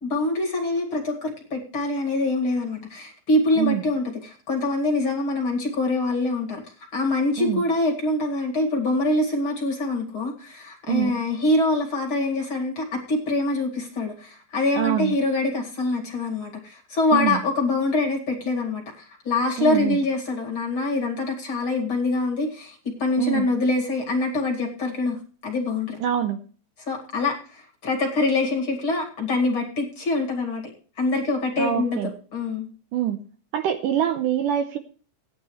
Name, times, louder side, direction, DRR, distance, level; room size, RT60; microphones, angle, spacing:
voice 1, 0.0-6.6 6.9-26.0 26.9-30.6 31.0-32.0 32.3-32.7, left 2 dB, 40° left, 1 dB, 2.5 m, -25 dB
voice 2, 14.8-15.2 17.1-17.4 19.6-20.0 23.2-23.5 26.0-26.4 31.6-32.1 32.9-33.2 33.5-34.8, right 10 dB, 75° right, 8 dB, 2.0 m, -24 dB
17.0 x 10.0 x 3.2 m, 0.40 s
omnidirectional pair, 4.3 m